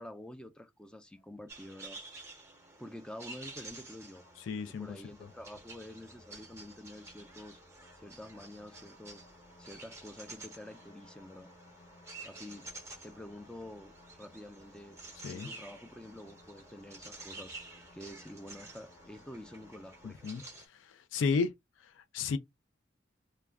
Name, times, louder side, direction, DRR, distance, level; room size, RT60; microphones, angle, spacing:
voice 1, 0.0-2.0 2.8-4.2 4.7-7.6 8.0-9.2 9.6-11.5 12.2-12.7 13.0-15.0 15.3-17.5 17.9-20.3, left 1 dB, 5° left, 0.3 m, -48 dB
sound 1, 1.2-20.1, left 2 dB, 30° left, 0.7 m, -60 dB
sound 2, 1.5-20.7, right 2 dB, 15° right, 0.7 m, -51 dB
voice 2, 4.5-4.9 15.2-15.5 20.0-20.4 20.7-21.5 22.0-22.4, left 5 dB, 80° left, 0.3 m, -33 dB
2.3 x 2.1 x 3.4 m
head